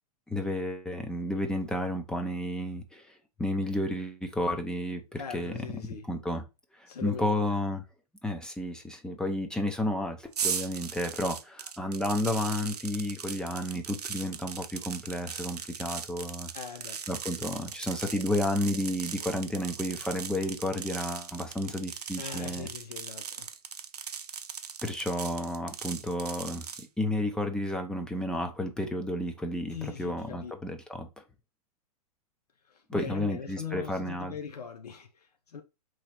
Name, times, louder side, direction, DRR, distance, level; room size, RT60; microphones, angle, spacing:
voice 1, 0.3-3.1 3.4-5.8 6.1-6.4 6.8-7.8 8.2-16.5 17.1-22.7 24.8-26.6 27.0-31.1 32.9-34.4, left 1 dB, 5° left, 0.6 m, -32 dB
voice 2, 5.1-6.1 6.9-7.5 16.5-17.0 22.2-23.5 29.7-30.5 32.7-35.6, left 6 dB, 85° left, 0.7 m, -41 dB
sound 1, 10.3-26.9, right 7 dB, 90° right, 0.6 m, -39 dB
3.9 x 3.1 x 4.3 m
hypercardioid pair, 115°, 20 cm